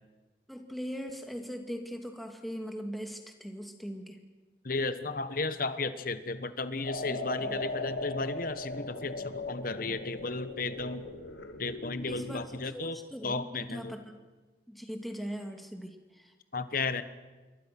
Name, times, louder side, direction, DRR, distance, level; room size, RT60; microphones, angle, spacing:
voice 1, 0.5-4.2 7.1-7.2 12.1-14.2 14.7-16.3, equal, ahead, 3 dB, 2.3 m, -40 dB
voice 2, 4.6-11.1 11.6-13.0 13.2-14.0 16.5-17.0, left 3 dB, 50° left, 12 dB, 1.3 m, -34 dB
sound 1, 6.8-12.5, left 2 dB, 90° left, 2.6 m, -38 dB
27.5 x 22.5 x 6.1 m, 1.3 s
head